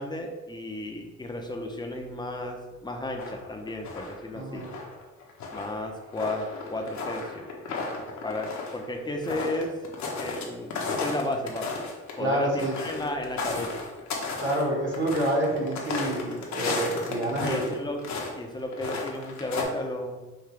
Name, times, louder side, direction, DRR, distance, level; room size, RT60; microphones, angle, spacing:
voice 1, 0.0-4.6 5.5-7.5 8.2-9.7 10.1-11.8 12.2-12.5 12.8-13.8 17.4-18.1 18.3-20.3, left 1 dB, 15° left, 3 dB, 0.7 m, -33 dB
sound 1, 3.2-4.2 4.6-10.4 10.7-17.7 18.0-18.3 18.7-19.6, left 4 dB, 70° left, 1.0 m, -34 dB
voice 2, 4.3-4.7 12.2-12.8 14.4-17.7, right 1 dB, 40° right, -3 dB, 1.5 m, -28 dB
5.9 x 2.6 x 3.2 m, 1.2 s
cardioid pair, 90°, 30 cm